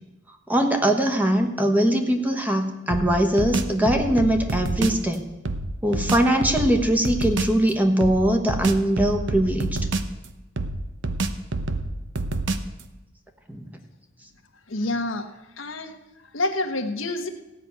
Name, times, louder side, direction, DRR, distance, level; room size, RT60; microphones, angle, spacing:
voice 1, 0.5-5.2 5.8-9.8 13.5-13.7, right 1 dB, 10° right, 4 dB, 1.2 m, -21 dB
sound 1, 2.9-5.0 5.5-7.6 8.0-10.3 10.6-12.8, right 2 dB, 65° right, 0.8 m, -28 dB
voice 2, 14.7-15.3 15.6-16.0 16.3-17.3, left 2 dB, 90° left, 6 dB, 1.2 m, -27 dB
15.5 x 5.8 x 9.2 m, 1.0 s
head